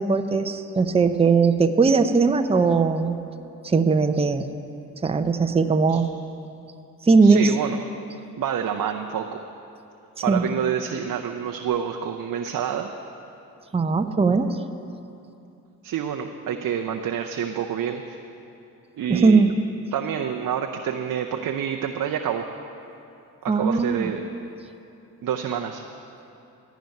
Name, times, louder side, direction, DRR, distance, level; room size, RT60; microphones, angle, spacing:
voice 1, 0.0-3.2 3.6-4.5 5.0-6.1 7.0-7.5 10.3-10.4 13.7-14.6 19.1-19.6 23.5-24.1, right 4 dB, 15° right, 8 dB, 0.7 m, -19 dB
voice 2, 7.2-7.8 8.4-9.4 10.2-12.9 15.8-18.2 18.9-19.4 19.9-22.5 23.4-24.2 25.2-25.8, right 8 dB, 50° right, 4 dB, 0.7 m, -28 dB
15.5 x 5.2 x 9.3 m, 2.8 s
hypercardioid pair, 45°, 41 cm